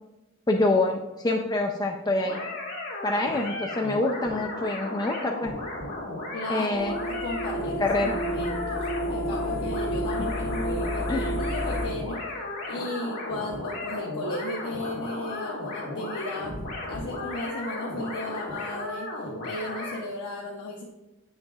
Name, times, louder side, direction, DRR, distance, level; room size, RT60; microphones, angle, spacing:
voice 1, 0.5-2.4 3.0-5.5 6.5-7.0 7.6-8.2 11.1-11.3, left 2 dB, 15° left, 2 dB, 0.3 m, -26 dB
sound 1, 2.2-20.0, left 2 dB, 70° left, 2.0 m, -35 dB
voice 2, 6.3-12.2 12.7-19.1 19.4-20.8, left 1 dB, 90° left, -2 dB, 0.7 m, -35 dB
sound 2, 6.7-11.9, equal, 45° left, 1.4 m, -30 dB
8.1 x 6.4 x 2.3 m, 1.0 s
head